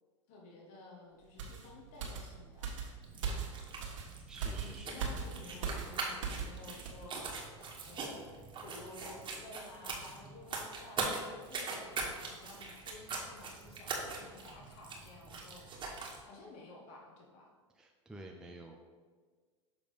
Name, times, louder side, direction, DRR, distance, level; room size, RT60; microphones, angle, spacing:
voice 1, 0.3-2.8 4.5-7.3 7.8-15.6 16.2-17.5, left 2 dB, 50° left, -2 dB, 1.4 m, -53 dB
sound 1, 1.4-6.6 6.9-7.1, right 6 dB, 75° right, 1.5 m, -40 dB
sound 2, 3.0-16.2, right 4 dB, 30° right, 1.5 m, -42 dB
voice 2, 4.1-5.0 17.7-18.9, right 2 dB, 5° right, 2 dB, 0.5 m, -51 dB
6.8 x 3.8 x 5.1 m, 1.5 s
hypercardioid pair, 105°, 16 cm